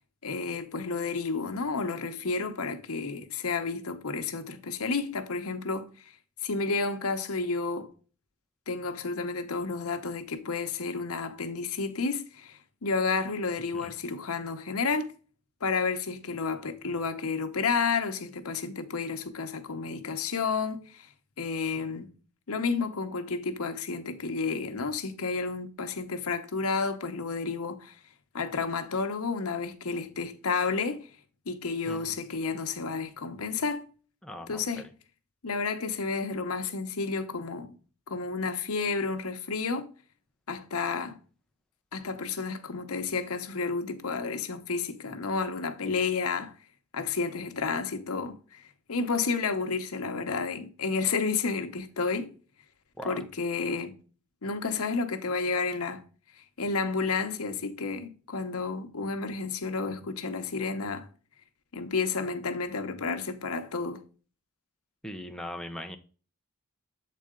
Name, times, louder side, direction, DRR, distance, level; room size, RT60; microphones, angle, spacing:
voice 1, 0.2-6.1 6.4-7.9 8.7-15.1 15.6-21.1 21.4-22.1 22.5-28.0 28.3-31.1 31.5-33.8 34.5-34.9 35.4-37.7 38.1-39.9 40.5-41.2 41.9-46.6 46.9-52.3 53.0-54.0 54.4-56.0 56.6-61.1 61.7-64.0, left 4 dB, 75° left, 0.9 m, -31 dB
voice 2, 34.2-34.8 53.0-53.2 65.0-66.0, left 1 dB, 5° left, 0.6 m, -39 dB
7.5 x 4.2 x 3.6 m
head